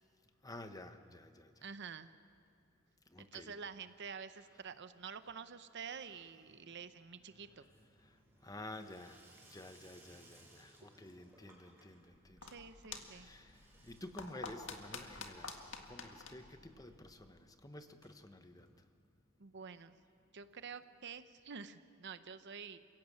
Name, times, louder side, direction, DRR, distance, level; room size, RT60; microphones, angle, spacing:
voice 1, 0.4-1.7 3.1-3.5 8.0-12.4 13.0-18.9, left 1 dB, 15° left, 8 dB, 1.1 m, -52 dB
voice 2, 1.6-2.1 3.2-7.7 12.4-13.3 19.4-20.0 20.3-22.8, right 6 dB, 55° right, 11 dB, 0.8 m, -48 dB
Water tap faucet / Sink (filling or washing), 2.3-3.1 3.3-3.9 4.2-19.5 19.8-19.9 20.1-20.2 20.4-20.5 21.5-21.6, right 2 dB, 10° right, 5.2 m, -67 dB
sound 1, 12.1-17.4, left 4 dB, 65° left, 1.9 m, -50 dB
29.0 x 16.0 x 8.5 m, 2.4 s
head